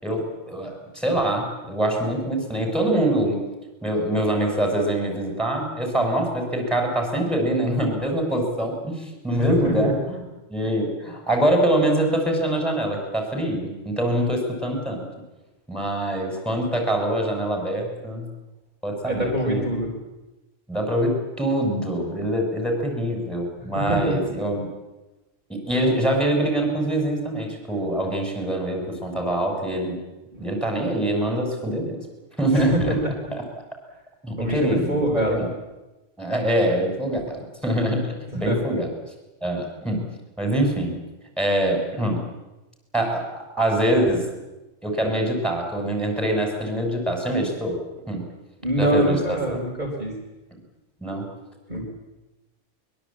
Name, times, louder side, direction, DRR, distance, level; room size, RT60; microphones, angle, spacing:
voice 1, 0.0-3.4 3.8-10.2 10.5-15.1 15.7-18.3 18.8-19.7 20.7-24.7 25.5-30.0 30.4-32.0 32.4-32.9 33.3-33.4 34.2-35.5 36.2-38.9 39.4-40.1 40.4-41.0 41.4-42.3 42.9-44.3 44.8-47.8 48.1-48.3 48.8-49.6 51.0-51.3, right 1 dB, ahead, 2 dB, 6.6 m, -24 dB
voice 2, 9.5-9.9 19.1-19.9 23.6-24.2 30.3-30.5 32.6-33.0 34.4-35.4 38.5-38.6 48.6-50.1 51.7-51.8, right 1 dB, 35° right, -2 dB, 4.3 m, -24 dB
23.0 x 22.0 x 8.7 m, 1.1 s
omnidirectional pair, 1.3 m